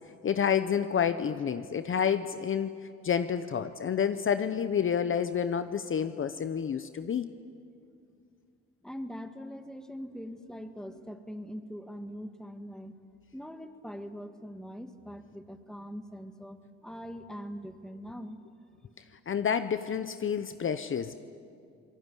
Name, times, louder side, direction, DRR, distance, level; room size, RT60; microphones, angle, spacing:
voice 1, 0.2-2.7 3.0-7.3 19.3-21.2, left 7 dB, 45° left, 11 dB, 0.9 m, -29 dB
voice 2, 8.8-12.9 13.3-16.6 16.8-18.4, equal, ahead, 8 dB, 1.9 m, -42 dB
27.0 x 19.5 x 10.0 m, 2.4 s
cardioid pair, 90°, 30 cm